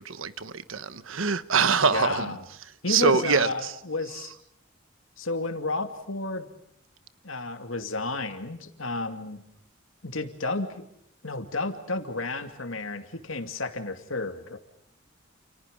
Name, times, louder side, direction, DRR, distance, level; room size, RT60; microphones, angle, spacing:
voice 1, 0.0-2.4 2.9-3.7, right 5 dB, 85° right, 1.2 m, -24 dB
voice 2, 1.9-2.4 2.8-4.3 5.2-6.5 7.2-9.4 10.0-10.8 11.2-14.6, left 3 dB, 85° left, 2.6 m, -31 dB
29.5 x 29.0 x 5.4 m
head